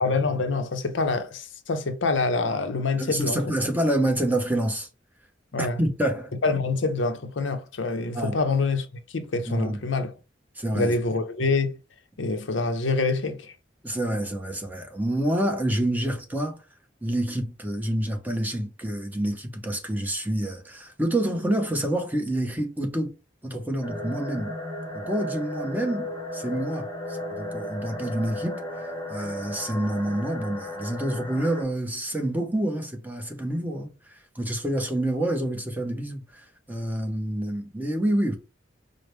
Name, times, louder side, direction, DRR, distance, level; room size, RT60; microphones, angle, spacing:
voice 1, 0.0-3.4 5.5-5.8 6.4-10.1 10.7-11.8 12.2-13.5, left 3 dB, 90° left, 0.7 m, -26 dB
voice 2, 3.0-4.9 5.6-6.3 8.1-8.4 9.5-9.8 10.6-10.9 13.8-16.6 17.0-23.1 23.4-24.5 24.9-28.6 29.1-38.4, right 1 dB, 10° right, 0.9 m, -27 dB
sound 1, 23.8-31.6, left 1 dB, 20° left, 1.1 m, -35 dB
4.8 x 2.1 x 3.2 m
head